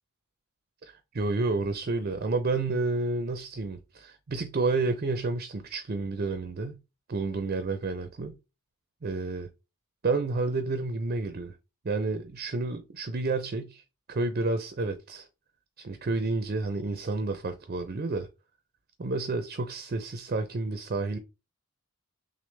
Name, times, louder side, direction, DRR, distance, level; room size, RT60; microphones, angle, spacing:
voice 1, 0.8-6.8 7.1-8.4 9.0-9.5 10.0-11.5 11.8-13.8 14.1-15.3 15.8-18.3 19.0-21.2, right 3 dB, 45° right, 0.5 m, -30 dB
6.1 x 2.1 x 3.3 m
head